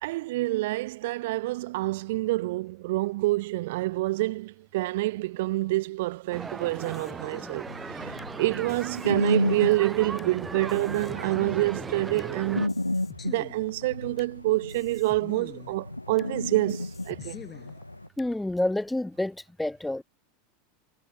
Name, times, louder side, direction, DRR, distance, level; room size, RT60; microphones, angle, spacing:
voice 1, 0.0-12.8 13.2-17.4, right 19 dB, 60° right, 0.3 m, -27 dB
sound 1, 6.3-12.7, right 4 dB, 15° right, 4.3 m, -38 dB
sound 2, 6.8-8.3 8.7-10.3 10.7-12.3 12.7-14.3 14.7-16.3 16.7-18.3, left 6 dB, 20° left, 3.8 m, -47 dB
sound 3, 7.7-18.1, left 2 dB, 90° left, 0.5 m, -33 dB
voice 2, 18.2-20.0, left 1 dB, 5° left, 0.6 m, -28 dB
figure-of-eight pair, 85°, 0 cm